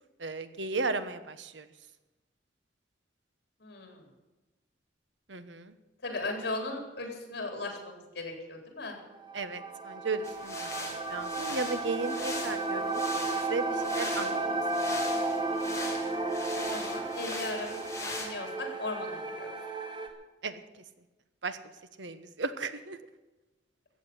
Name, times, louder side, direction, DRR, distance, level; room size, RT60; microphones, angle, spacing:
voice 1, 0.2-1.6 5.3-5.7 9.3-13.0 13.3-15.0 20.4-20.6 21.4-21.6 22.0-23.0, right 3 dB, 80° right, 12 dB, 1.1 m, -35 dB
voice 2, 3.6-4.0 6.0-9.0 16.6-19.5, left 2 dB, 60° left, 4 dB, 3.9 m, -37 dB
sound 1, 9.1-20.1, right 2 dB, 25° right, 1.7 m, -33 dB
sound 2, 10.2-18.3, left 3 dB, 15° left, 2.7 m, -41 dB
14.5 x 8.3 x 9.9 m, 1.1 s
head